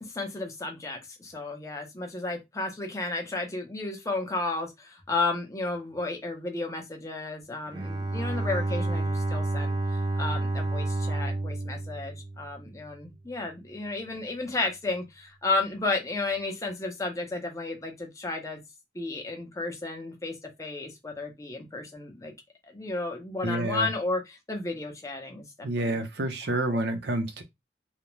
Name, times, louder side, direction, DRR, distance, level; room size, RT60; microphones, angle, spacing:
voice 1, 0.0-9.8 10.2-18.6 18.9-22.3 22.7-26.0 26.7-26.8, left 3 dB, 20° left, 0.6 m, -33 dB
Bowed string instrument, 7.7-12.9, right 2 dB, 25° right, 0.3 m, -30 dB
voice 2, 23.4-23.9 25.6-27.4, right 1 dB, 70° right, 0.6 m, -28 dB
2.4 x 2.1 x 3.0 m
head